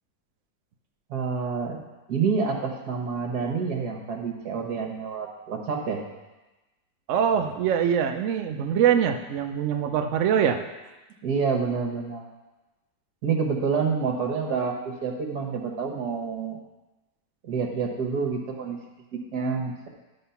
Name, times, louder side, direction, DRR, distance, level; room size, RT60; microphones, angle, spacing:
voice 1, 1.1-1.8 2.1-6.0 11.2-12.3 13.2-16.6 17.4-18.8 19.1-19.9, right 5 dB, 60° right, 2 dB, 1.6 m, -28 dB
voice 2, 7.1-10.6, right 8 dB, 75° right, 6 dB, 0.7 m, -23 dB
11.0 x 3.9 x 5.6 m, 1.1 s
omnidirectional pair, 2.0 m